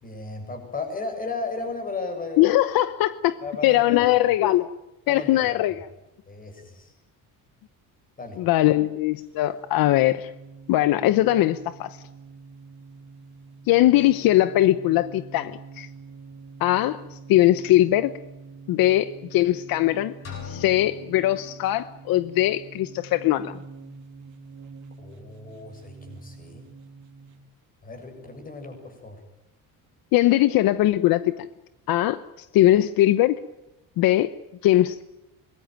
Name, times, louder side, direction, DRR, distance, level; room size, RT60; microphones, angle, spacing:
voice 1, 0.0-2.5 3.4-4.0 5.1-5.7 6.3-6.9 8.2-8.4 25.0-26.7 27.8-29.2, left 3 dB, 25° left, 7.2 m, -35 dB
voice 2, 2.4-3.4 3.6-4.7 5.1-5.9 8.4-10.3 10.7-12.0 13.7-15.9 16.6-18.1 18.7-20.1 20.4-23.6 30.1-31.5 31.9-33.4 34.0-34.3 34.6-35.0, left 15 dB, 75° left, 1.0 m, -21 dB
sound 1, 9.2-27.4, right 5 dB, 55° right, 3.1 m, -45 dB
sound 2, 20.2-22.2, left 7 dB, 40° left, 7.7 m, -41 dB
24.5 x 21.0 x 9.3 m
cardioid pair, 165°, 35 cm